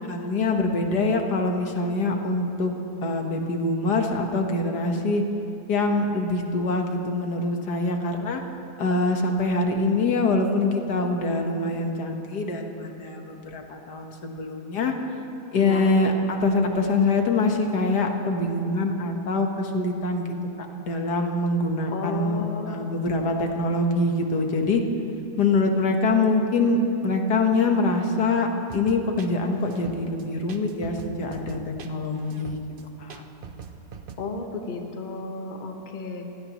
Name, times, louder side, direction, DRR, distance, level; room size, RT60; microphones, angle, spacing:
voice 1, 0.1-2.7 3.0-5.2 5.7-8.4 8.8-14.9 15.5-20.3 20.6-24.8 25.4-32.6 33.0-33.2, left 2 dB, 80° left, 3 dB, 1.9 m, -24 dB
voice 2, 15.6-15.9 21.9-22.8 34.2-36.3, left 4 dB, 30° left, 3 dB, 1.2 m, -32 dB
sound 1, 28.7-34.2, right 7 dB, 50° right, 0.7 m, -42 dB
27.5 x 16.5 x 3.1 m, 2.8 s
omnidirectional pair, 1.7 m